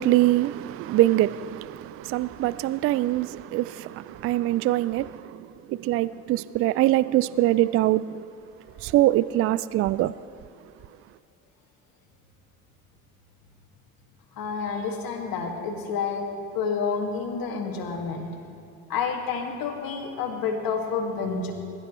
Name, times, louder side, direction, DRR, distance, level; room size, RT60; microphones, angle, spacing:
voice 1, 0.0-8.3 8.8-10.2, right 15 dB, 35° right, 0.4 m, -23 dB
voice 2, 14.4-16.3 16.5-18.4 18.9-21.5, left 5 dB, 50° left, 2.2 m, -29 dB
22.0 x 12.0 x 3.2 m
figure-of-eight pair, 55°, 43 cm